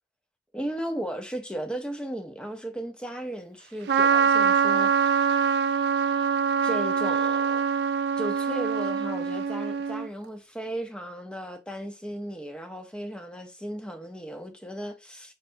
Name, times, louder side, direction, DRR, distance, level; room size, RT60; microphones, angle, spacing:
voice 1, 0.5-5.4 6.6-7.6 8.2-15.3, right 1 dB, 5° left, 0.7 m, -36 dB
Trumpet, 3.9-10.1, right 7 dB, 70° right, 0.4 m, -24 dB
5.5 x 3.3 x 2.6 m
head